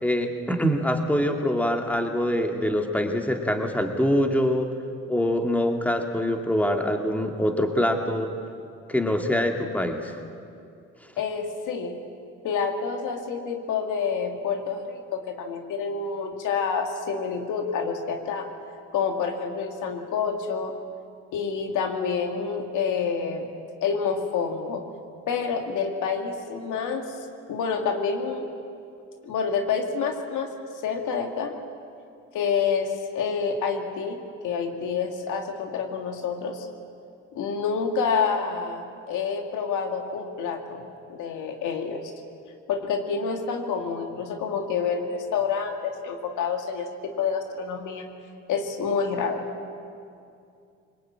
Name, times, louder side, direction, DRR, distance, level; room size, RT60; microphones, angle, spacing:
voice 1, 0.0-4.7 5.1-8.3 8.9-10.1, equal, 5° left, 3 dB, 2.5 m, -24 dB
voice 2, 11.2-12.0 12.4-18.5 18.9-20.7 21.3-23.5 23.8-24.9 25.3-27.0 27.5-28.5 29.2-30.5 30.8-31.5 32.3-36.7 37.3-42.1 42.7-48.1 48.5-49.5, left 5 dB, 90° left, 4 dB, 2.3 m, -28 dB
23.0 x 20.5 x 8.9 m, 2.4 s
cardioid pair, 90°, 30 cm